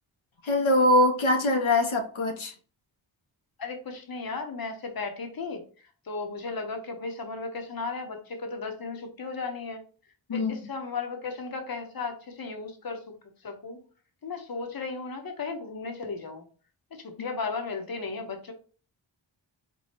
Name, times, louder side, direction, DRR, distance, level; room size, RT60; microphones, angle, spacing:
voice 1, 0.4-2.5 10.3-10.5, left 1 dB, 80° left, 0.8 m, -23 dB
voice 2, 3.6-5.6 6.1-9.8 10.3-13.0 13.4-13.8 14.2-16.4 17.2-18.5, left 4 dB, 50° left, 0.9 m, -35 dB
4.5 x 2.2 x 4.3 m
wide cardioid pair, 80°, 46 cm